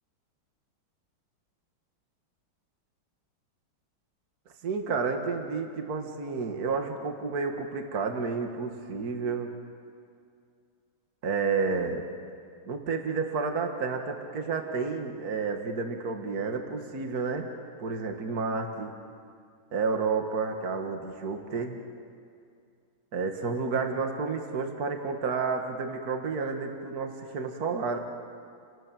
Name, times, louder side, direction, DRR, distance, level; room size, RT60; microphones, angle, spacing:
voice 1, 4.6-9.5 11.2-12.0 12.7-17.5 17.8-18.9 19.7-21.8 23.1-28.0, right 4 dB, 50° right, 4 dB, 2.1 m, -30 dB
29.5 x 19.0 x 7.6 m, 2.3 s
omnidirectional pair, 2.2 m